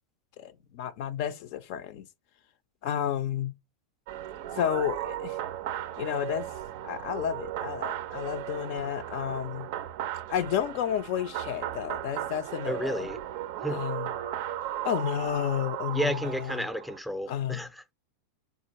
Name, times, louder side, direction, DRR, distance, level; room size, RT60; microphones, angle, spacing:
voice 1, 0.4-2.1 2.8-3.5 4.5-5.4 6.0-6.5 6.8-9.7 10.3-13.1 13.7-14.1 14.8-16.6 17.3-17.6, left 10 dB, 55° left, 0.4 m, -31 dB
sound 1, 4.1-17.0, right 12 dB, 60° right, 0.4 m, -36 dB
voice 2, 12.7-13.2 13.6-13.9 15.9-17.9, equal, ahead, 0.5 m, -32 dB
3.6 x 2.4 x 2.9 m
hypercardioid pair, 95°, 0 cm